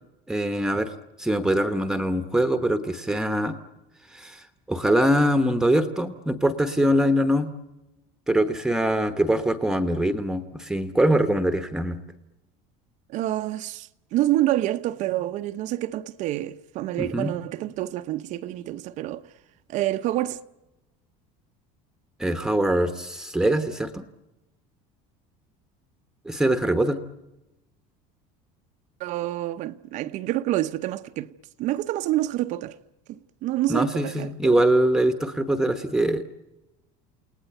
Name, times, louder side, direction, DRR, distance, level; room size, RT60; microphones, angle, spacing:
voice 1, 0.3-0.9 1.2-3.6 4.1-7.5 8.3-12.0 17.0-17.3 22.2-24.0 26.2-27.0 33.7-36.2, right 1 dB, 5° right, 1.1 m, -23 dB
voice 2, 13.1-19.2 19.7-20.4 29.0-31.3 31.6-32.7 33.1-34.6, right 14 dB, 45° right, 0.8 m, -27 dB
29.5 x 18.5 x 9.2 m
cardioid pair, 170°, 17 cm